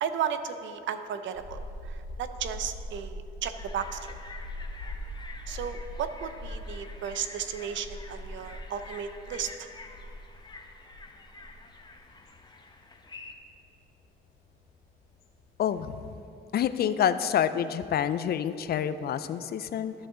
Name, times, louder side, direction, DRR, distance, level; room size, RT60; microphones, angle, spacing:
voice 1, 0.0-4.1 5.5-9.7, right 8 dB, 70° right, 10 dB, 0.5 m, -34 dB
sound 1, 1.3-16.1, left 1 dB, 90° left, 0.9 m, -42 dB
sound 2, 3.5-13.3, left 3 dB, 20° left, 0.8 m, -48 dB
voice 2, 15.6-16.0 16.5-19.9, left 9 dB, 55° left, 13 dB, 0.4 m, -27 dB
13.0 x 5.4 x 3.8 m, 2.6 s
cardioid pair, 90°, 20 cm